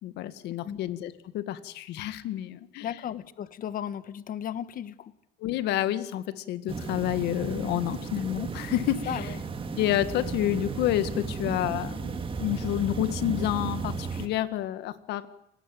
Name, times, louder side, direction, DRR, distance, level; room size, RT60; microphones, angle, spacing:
voice 1, 0.0-2.9 5.4-9.1 9.7-15.3, left 13 dB, 85° left, 12 dB, 2.0 m, -29 dB
voice 2, 2.8-5.1 9.0-9.4, left 9 dB, 55° left, 14 dB, 1.6 m, -35 dB
sound 1, 6.7-14.3, right 5 dB, 30° right, 3.0 m, -34 dB
28.5 x 19.0 x 9.3 m, 0.79 s
cardioid pair, 110°, 17 cm